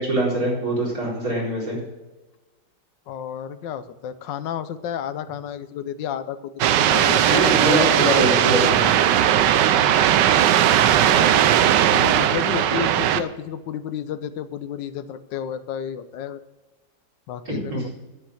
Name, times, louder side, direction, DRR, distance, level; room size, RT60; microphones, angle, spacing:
voice 1, 0.0-1.8 7.2-8.9 17.4-17.8, right 1 dB, 50° right, -5 dB, 4.8 m, -23 dB
voice 2, 3.1-7.3 10.8-16.4 17.3-17.9, left 8 dB, 90° left, 12 dB, 1.4 m, -32 dB
sound 1, 6.6-13.2, right 10 dB, 80° right, 1.3 m, -18 dB
9.5 x 8.9 x 6.4 m, 1.1 s
omnidirectional pair, 1.9 m